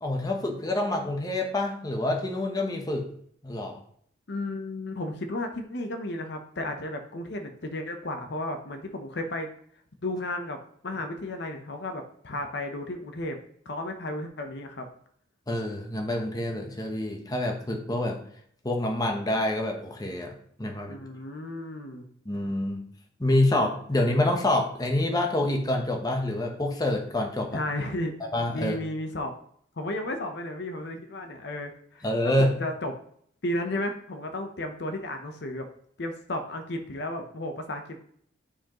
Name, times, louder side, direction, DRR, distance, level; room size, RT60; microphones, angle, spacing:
voice 1, 0.0-3.1 3.4-3.8 15.5-18.2 18.6-20.3 20.6-21.0 22.3-22.8 23.2-27.6 28.3-28.8 32.0-32.6, left 1 dB, 20° left, 2 dB, 0.9 m, -27 dB
voice 2, 4.3-9.5 10.0-10.6 10.8-13.4 13.7-14.9 20.9-22.1 27.5-28.2 28.5-29.3 29.8-32.9 33.4-35.7 36.0-38.0, left 1 dB, 60° left, 5 dB, 0.8 m, -33 dB
9.9 x 4.6 x 3.0 m, 0.63 s
head